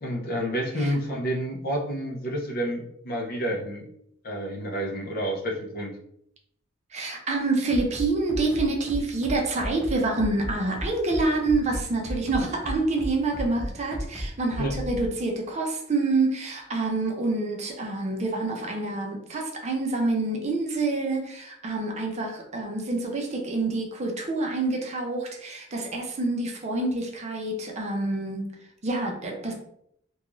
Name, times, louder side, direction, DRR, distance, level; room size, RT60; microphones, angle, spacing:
voice 1, 0.0-3.8 4.2-5.9 14.6-14.7, equal, 50° left, 0 dB, 0.5 m, -29 dB
voice 2, 6.9-28.5 28.8-29.5, right 2 dB, 35° right, 1 dB, 0.5 m, -27 dB
Bass drum, 7.7-15.1, equal, ahead, 0.9 m, -33 dB
2.4 x 2.3 x 2.9 m, 0.73 s
head